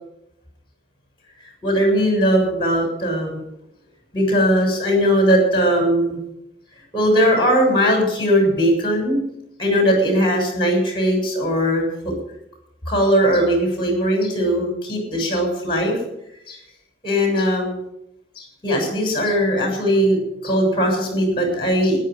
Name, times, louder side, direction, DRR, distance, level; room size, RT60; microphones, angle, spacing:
voice 1, 1.6-3.4 4.1-6.2 6.9-9.2 9.6-12.1 12.9-16.0 16.5-16.6 17.0-17.8 18.4-22.0, equal, 30° left, 2 dB, 6.6 m, -19 dB
14.0 x 10.5 x 9.3 m, 0.83 s
head